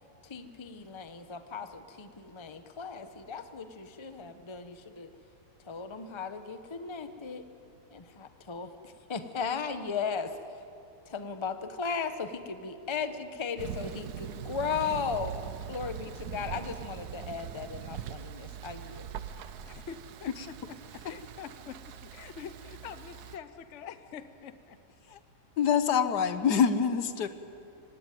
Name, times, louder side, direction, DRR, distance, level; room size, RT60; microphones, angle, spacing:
voice 1, 0.2-5.1 5.7-7.4 7.9-10.4 11.0-15.3 15.7-19.1, left 5 dB, 20° left, 9 dB, 0.8 m, -36 dB
Thunder, 13.6-23.4, right 9 dB, 65° right, 1.3 m, -42 dB
voice 2, 19.6-24.8, left 7 dB, 50° left, 11 dB, 1.1 m, -45 dB
voice 3, 25.6-27.3, left 7 dB, 70° left, 10 dB, 1.5 m, -25 dB
25.0 x 18.0 x 9.2 m, 2.7 s
omnidirectional pair, 1.9 m